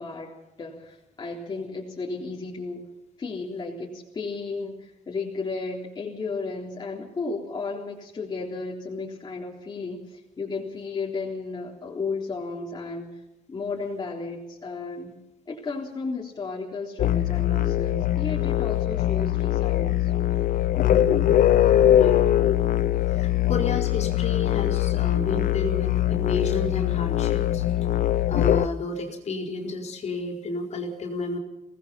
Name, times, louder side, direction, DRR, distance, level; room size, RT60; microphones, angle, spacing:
voice 1, 0.0-2.9 3.2-13.1 13.5-15.1 15.5-20.1, left 4 dB, 30° left, -3 dB, 3.7 m, -34 dB
sound 1, 17.0-28.7, left 12 dB, 70° left, 0.8 m, -22 dB
voice 2, 20.8-21.4 21.9-22.2 23.1-27.6 28.3-31.4, left 3 dB, 50° left, 3 dB, 4.4 m, -31 dB
24.5 x 19.0 x 5.7 m, 0.91 s
wide cardioid pair, 175°, 15 cm